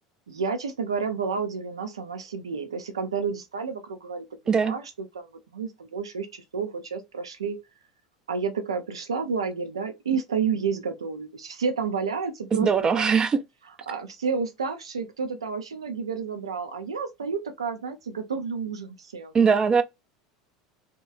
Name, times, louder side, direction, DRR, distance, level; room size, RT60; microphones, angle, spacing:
voice 1, 0.3-4.2 4.6-7.6 8.3-13.1 13.9-19.3, right 5 dB, 80° right, 0.5 m, -30 dB
voice 2, 12.6-13.4 19.3-19.8, right 6 dB, 25° right, 0.5 m, -20 dB
2.8 x 2.2 x 2.4 m
figure-of-eight pair, 75°, 3 cm